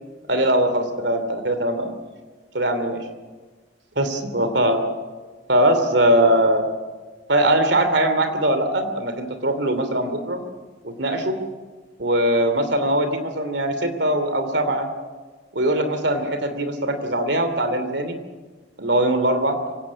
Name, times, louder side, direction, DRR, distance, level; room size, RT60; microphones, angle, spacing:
voice 1, 0.3-1.9 2.5-3.0 4.0-4.8 5.5-6.7 7.3-10.4 10.8-11.4 12.0-14.9 15.5-18.2 18.8-19.6, right 1 dB, 70° right, 9 dB, 2.9 m, -21 dB
25.0 x 17.0 x 8.7 m, 1.4 s
head